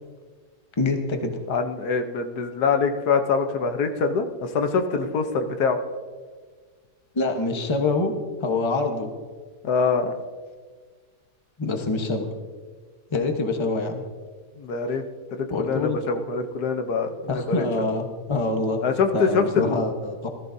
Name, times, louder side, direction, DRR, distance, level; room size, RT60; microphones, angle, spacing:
voice 1, 0.8-1.4 7.1-8.1 8.4-9.1 11.6-12.3 13.1-14.0 15.5-16.0 17.3-18.8 19.1-20.3, left 3 dB, 20° left, 4 dB, 1.0 m, -25 dB
voice 2, 1.5-5.8 9.6-10.1 14.6-15.0 15.3-17.6 18.8-19.8, left 5 dB, 75° left, 7 dB, 1.4 m, -24 dB
18.0 x 13.5 x 2.7 m, 1.5 s
omnidirectional pair, 1.7 m